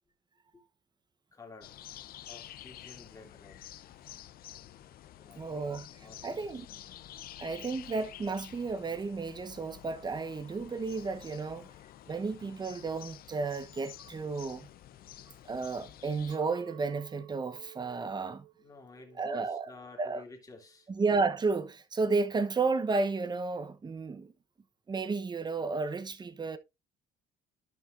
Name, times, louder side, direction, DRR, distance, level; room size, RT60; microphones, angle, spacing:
voice 1, 1.3-1.8 2.3-3.7 5.2-7.1 18.6-20.9, left 3 dB, 20° left, 2.5 m, -52 dB
sound 1, 1.6-16.4, left 12 dB, 60° left, 0.7 m, -50 dB
voice 2, 5.4-5.9 6.2-6.7 7.4-11.7 12.1-14.7 15.5-18.5 19.2-19.7 20.0-20.2 20.9-24.3 24.9-26.6, right 4 dB, 25° right, 1.0 m, -32 dB
Chink clink, 16.3-21.5, right 16 dB, 85° right, 1.2 m, -54 dB
12.5 x 5.5 x 2.6 m
cardioid pair, 110°, 17 cm